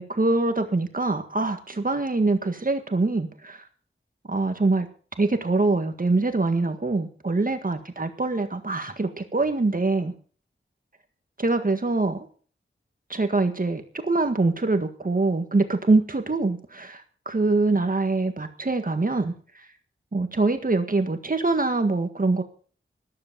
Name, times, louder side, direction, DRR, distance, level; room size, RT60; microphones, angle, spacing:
voice 1, 0.0-3.7 4.3-4.9 5.2-10.1 11.4-12.2 13.1-19.3 20.1-22.4, right 3 dB, 40° right, 7 dB, 1.7 m, -24 dB
13.5 x 13.0 x 5.3 m, 0.42 s
wide cardioid pair, 80°, 21 cm